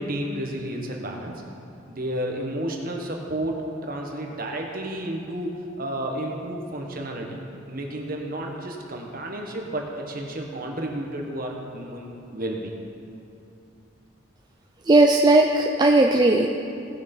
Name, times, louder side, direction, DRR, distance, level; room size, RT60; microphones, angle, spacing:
voice 1, 0.0-1.3 1.9-7.4 7.7-12.7, right 1 dB, 45° right, 1 dB, 1.4 m, -31 dB
voice 2, 14.9-16.5, right 2 dB, 20° right, 2 dB, 0.4 m, -17 dB
17.5 x 6.3 x 5.5 m, 2.6 s
head